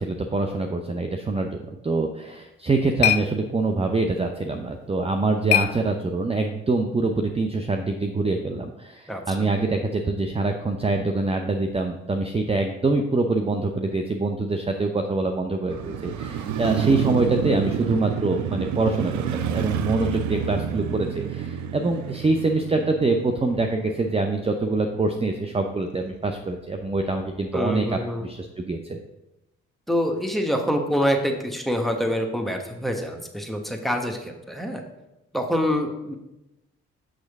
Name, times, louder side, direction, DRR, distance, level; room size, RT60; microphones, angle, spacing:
voice 1, 0.0-29.0, right 3 dB, 20° right, 4 dB, 0.6 m, -25 dB
sound 1, 2.3-6.5, left 14 dB, 70° left, 0.5 m, -29 dB
voice 2, 9.1-9.5 27.5-28.2 29.9-34.8 35.3-36.1, equal, ahead, 4 dB, 1.2 m, -26 dB
Motorcycle, 15.7-25.8 26.1-26.2, right 8 dB, 65° right, 0.6 m, -29 dB
6.4 x 6.2 x 3.5 m, 0.95 s
hypercardioid pair, 50°, 31 cm